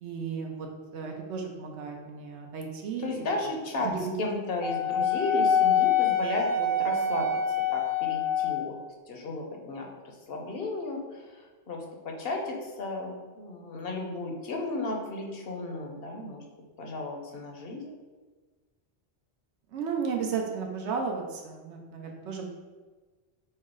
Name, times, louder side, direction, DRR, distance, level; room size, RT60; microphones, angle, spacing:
voice 1, 0.0-3.3 3.8-4.1 19.7-22.5, right 5 dB, 75° right, 2 dB, 0.9 m, -34 dB
voice 2, 3.0-3.9 4.2-7.4 7.7-8.8 9.1-16.4 16.8-17.9, left 2 dB, 65° left, 1 dB, 0.8 m, -34 dB
Wind instrument woodwind instrument, 4.6-8.8, left 5 dB, 30° right, 0.8 m, -25 dB
5.5 x 2.1 x 3.7 m, 1.3 s
omnidirectional pair, 1.2 m